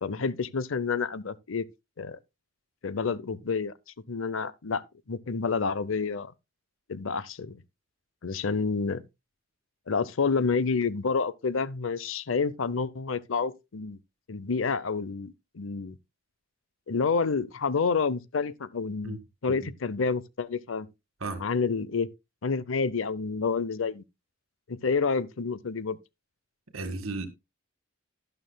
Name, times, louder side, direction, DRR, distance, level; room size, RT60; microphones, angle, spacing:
voice 1, 0.0-1.6 2.0-2.2 2.8-3.7 4.1-4.8 5.1-6.3 6.9-7.6 8.2-9.0 9.9-14.0 14.3-16.0 16.9-20.9 21.4-22.1 22.4-24.0 24.7-26.0, left 5 dB, 70° left, 0.7 m, -29 dB
voice 2, 26.7-27.3, right 2 dB, 80° right, 1.8 m, -34 dB
12.0 x 11.5 x 2.2 m
head